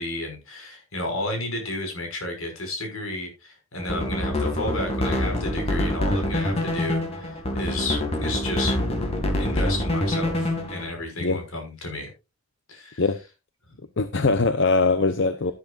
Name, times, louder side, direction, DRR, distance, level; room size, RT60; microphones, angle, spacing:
voice 1, 0.0-8.7 9.3-12.1 12.7-13.0 13.7-13.8, left 2 dB, 80° left, 6.0 m, -32 dB
sound 1, 3.8-10.9, left 1 dB, 30° left, 2.3 m, -25 dB
voice 2, 14.0-15.5, left 3 dB, 60° left, 0.8 m, -21 dB
12.5 x 12.0 x 2.5 m
head